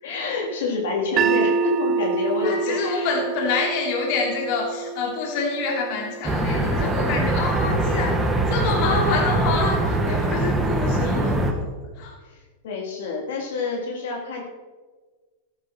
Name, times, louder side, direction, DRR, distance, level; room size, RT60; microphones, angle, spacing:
voice 1, 0.0-3.2 7.5-7.8 12.2-14.4, left 3 dB, 70° left, -1 dB, 3.2 m, -28 dB
sound 1, 1.2-7.3, right 5 dB, 35° right, 0.6 m, -27 dB
voice 2, 2.4-11.7 12.0-12.2, left 4 dB, 55° left, 0 dB, 3.1 m, -27 dB
sound 2, 6.2-11.5, right 2 dB, 10° right, 1.9 m, -22 dB
15.0 x 11.0 x 4.4 m, 1.4 s
hypercardioid pair, 105°, 0 cm